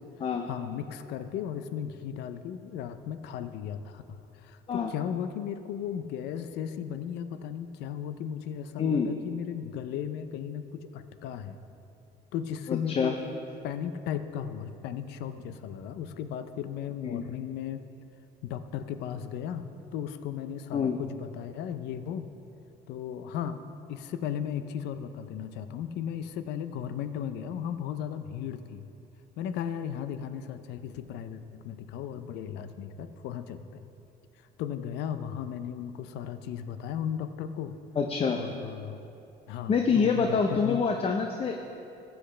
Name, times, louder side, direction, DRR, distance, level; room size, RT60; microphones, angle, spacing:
voice 1, 0.5-11.6 12.3-13.3 13.6-17.8 18.4-22.3 22.9-23.6 23.9-28.9 29.4-33.9 34.6-37.8 38.3-39.1 39.5-40.8, left 9 dB, 85° left, 10 dB, 0.6 m, -36 dB
voice 2, 8.8-9.1 12.7-13.1 17.0-17.2 20.7-21.0 38.0-38.4 39.7-41.7, left 5 dB, 35° left, 3 dB, 0.6 m, -26 dB
15.0 x 8.1 x 3.3 m, 2.7 s
cardioid pair, 110°, 17 cm